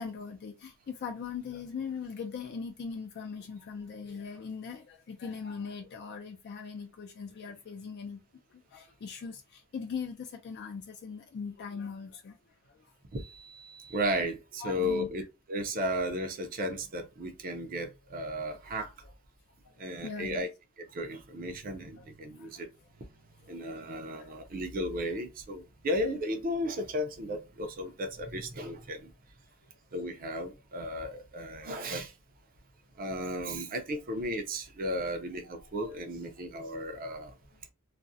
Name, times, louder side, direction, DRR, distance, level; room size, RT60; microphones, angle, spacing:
voice 1, 0.0-8.2 8.7-12.4 14.6-15.1 19.7-19.8 20.0-20.4 22.0-22.1 22.4-22.6 23.6-23.9 24.2-24.3, left 5 dB, 50° left, 0.4 m, -40 dB
voice 2, 13.1-18.9 19.8-20.5 20.8-22.7 23.5-29.1 29.9-32.1 33.0-37.3, equal, 40° right, 0.5 m, -34 dB
2.3 x 2.0 x 2.6 m
head